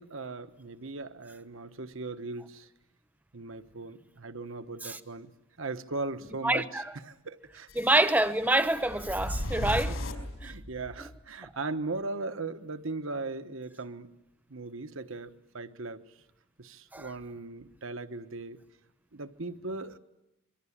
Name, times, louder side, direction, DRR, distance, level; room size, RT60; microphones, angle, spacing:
voice 1, 0.0-2.7 3.3-5.3 5.6-7.7 9.5-10.0 10.4-14.1 14.5-16.0 16.6-18.6 19.1-20.0, right 3 dB, 70° right, 1.2 m, -38 dB
voice 2, 6.4-6.9 7.8-9.9 10.4-10.5 16.9-17.1, right 1 dB, 10° right, 1.0 m, -26 dB
sound 1, 7.7-11.1, left 1 dB, 75° left, 4.8 m, -36 dB
26.5 x 24.0 x 8.7 m
head